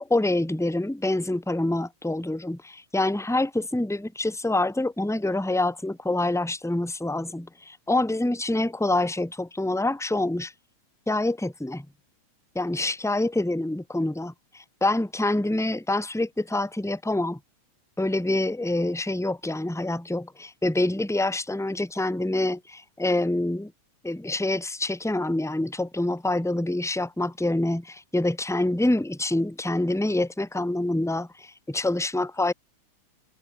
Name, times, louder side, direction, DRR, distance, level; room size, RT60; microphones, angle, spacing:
voice 1, 0.0-10.5 11.1-11.9 12.5-17.4 18.0-23.7 24.0-32.5, left 2 dB, ahead, 3.4 m, -26 dB
omnidirectional pair, 3.5 m